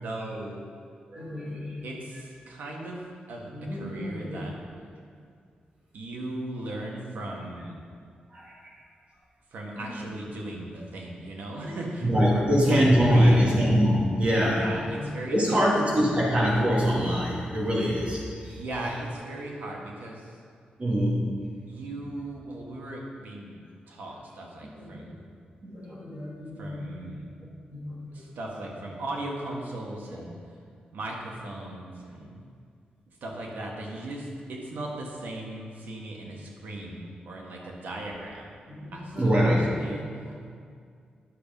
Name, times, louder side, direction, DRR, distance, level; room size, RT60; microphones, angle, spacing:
voice 1, 0.0-0.6 1.8-3.0 3.3-4.6 5.9-7.8 9.5-12.7 13.1-13.6 14.5-15.7 18.6-20.4 21.7-23.6 23.9-25.2 26.6-27.3 28.1-30.6 30.9-32.4 33.1-38.6 38.9-40.5, right 1 dB, 80° right, -1 dB, 1.9 m, -38 dB
voice 2, 1.1-1.8 3.5-4.4 8.3-8.7 11.6-11.7 12.0-15.0 15.3-18.6 20.8-21.2 24.6-25.1 25.6-27.1 27.4-28.3 38.7-40.2, equal, 40° right, -4 dB, 2.8 m, -25 dB
10.5 x 7.1 x 5.5 m, 2.2 s
wide cardioid pair, 115°, 3 cm